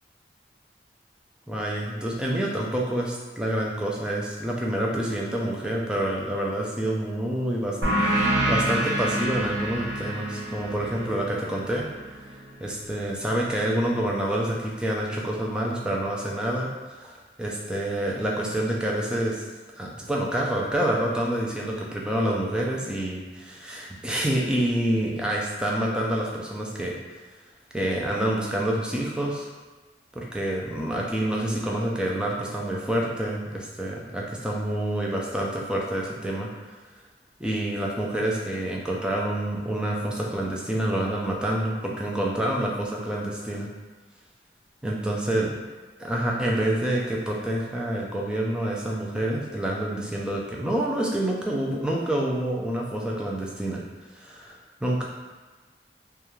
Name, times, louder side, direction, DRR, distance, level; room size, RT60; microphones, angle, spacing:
voice 1, 1.5-7.8 8.0-11.9 12.6-19.4 19.8-27.0 27.7-29.5 30.2-36.5 37.4-43.7 44.8-45.5 46.0-53.8 54.1-55.0, right 1 dB, 5° right, -3 dB, 0.3 m, -27 dB
sound 1, 7.8-13.0, right 1 dB, 85° right, 0.7 m, -27 dB
2.3 x 2.2 x 3.0 m, 1.3 s
head